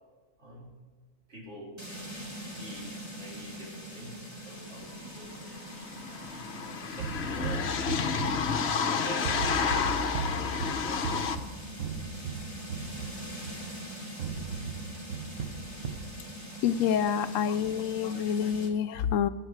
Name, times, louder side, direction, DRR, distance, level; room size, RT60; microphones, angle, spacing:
voice 1, 0.4-0.7 1.3-1.8 2.5-5.7 6.5-8.4 8.9-11.4, right 1 dB, 55° right, -3 dB, 3.7 m, -46 dB
sound 1, 1.8-18.7, equal, 20° right, 1.8 m, -43 dB
sound 2, 4.8-4.9 5.1-11.4, left 6 dB, 55° left, 1.0 m, -30 dB
sound 3, 7.0-8.9 9.2-13.7 14.2-16.1, right 3 dB, 70° right, 1.3 m, -36 dB
voice 2, 16.6-19.3, left 8 dB, 75° left, 12 dB, 0.9 m, -27 dB
19.5 x 8.1 x 4.7 m, 1.4 s
omnidirectional pair, 1.4 m